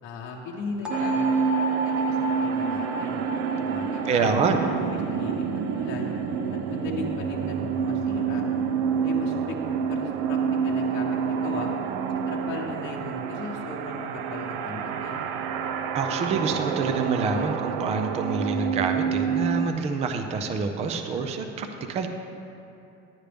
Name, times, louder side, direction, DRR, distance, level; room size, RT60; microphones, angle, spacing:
voice 1, 0.0-3.2 3.6-4.5 4.9-6.1 6.5-8.5 9.0-9.6 9.9-11.7 12.3-15.2, left 3 dB, 35° left, -2 dB, 0.9 m, -38 dB
sound 1, 0.8-6.7, left 1 dB, 5° right, 0.8 m, -34 dB
sound 2, 0.9-19.7, right 6 dB, 90° right, 0.6 m, -28 dB
voice 2, 4.1-4.7 15.9-22.1, right 4 dB, 20° right, 6 dB, 0.4 m, -27 dB
11.0 x 10.5 x 3.4 m, 2.7 s
cardioid pair, 180°, 32 cm